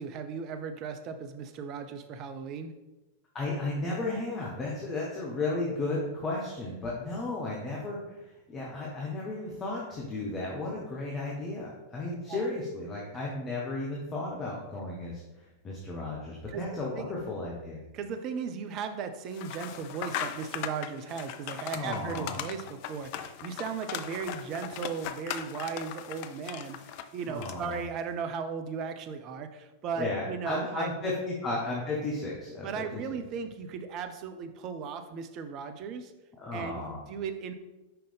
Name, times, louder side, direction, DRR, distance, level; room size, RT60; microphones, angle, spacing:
voice 1, 0.0-2.7 12.1-12.5 16.5-17.1 17.9-30.9 32.6-36.1 36.5-37.5, right 6 dB, 35° right, 8 dB, 0.5 m, -37 dB
voice 2, 3.3-17.8 21.7-22.4 27.3-27.8 30.0-33.0 36.4-37.0, left 2 dB, 20° left, -4 dB, 1.1 m, -34 dB
sound 1, 19.3-27.8, left 10 dB, 45° left, 0.4 m, -39 dB
5.7 x 5.2 x 3.4 m, 1.0 s
figure-of-eight pair, 90°, 0 cm